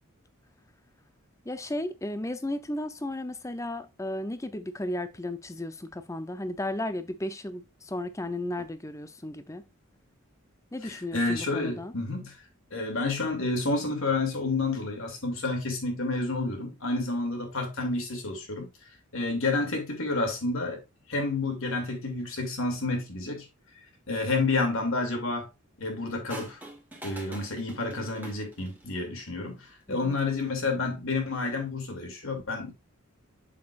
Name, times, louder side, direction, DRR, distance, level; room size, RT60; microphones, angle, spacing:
voice 1, 1.5-9.7 10.7-11.9 29.9-30.2, left 1 dB, 15° left, 0.6 m, -34 dB
voice 2, 10.8-12.4 12.7-18.7 19.1-20.8 21.1-23.5 24.1-25.5 25.8-26.6 27.0-32.7, left 3 dB, 70° left, 2.6 m, -30 dB
sound 1, 26.3-29.0 30.0-30.4, right 2 dB, 10° right, 1.8 m, -45 dB
7.5 x 6.7 x 2.5 m
head